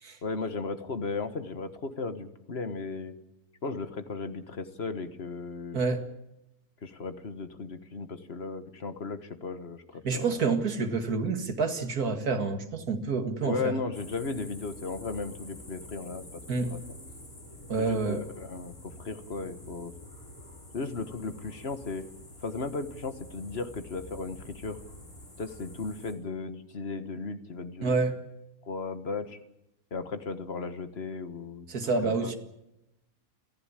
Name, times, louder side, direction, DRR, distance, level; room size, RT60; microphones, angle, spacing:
voice 1, 0.2-3.1 3.6-5.8 6.8-10.4 13.4-16.8 17.8-19.9 20.7-22.1 22.4-24.8 25.4-28.0 28.6-29.4 29.9-31.7 32.0-32.3, left 4 dB, 45° left, 10 dB, 1.6 m, -36 dB
voice 2, 5.7-6.1 10.0-13.7 16.5-16.8 17.7-18.2 27.8-28.2 31.7-32.4, right 4 dB, 85° right, 6 dB, 2.5 m, -28 dB
sound 1, 13.9-26.1, left 1 dB, 70° left, 5.8 m, -48 dB
29.5 x 11.0 x 9.8 m, 0.89 s
omnidirectional pair, 1.6 m